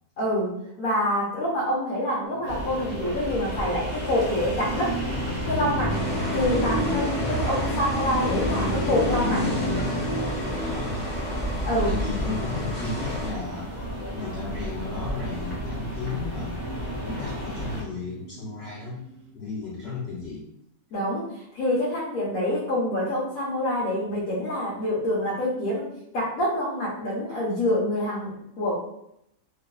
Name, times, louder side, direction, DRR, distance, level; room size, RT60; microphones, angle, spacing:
voice 1, 0.2-5.0 5.5-6.0 6.3-9.5 11.6-11.9 20.9-25.8 26.1-28.8, left 1 dB, 70° left, -8 dB, 1.2 m, -26 dB
sound 1, 2.2-19.3, right 2 dB, 80° right, 1.1 m, -42 dB
sound 2, 2.5-17.8, equal, 50° right, 0.5 m, -30 dB
sound 3, 5.9-13.3, equal, 30° left, 1.5 m, -33 dB
voice 2, 10.6-11.3 11.8-13.8 14.1-16.7 17.0-19.0 19.3-20.4, left 3 dB, 55° left, -7 dB, 0.8 m, -34 dB
3.0 x 2.4 x 2.3 m, 0.76 s
omnidirectional pair, 1.6 m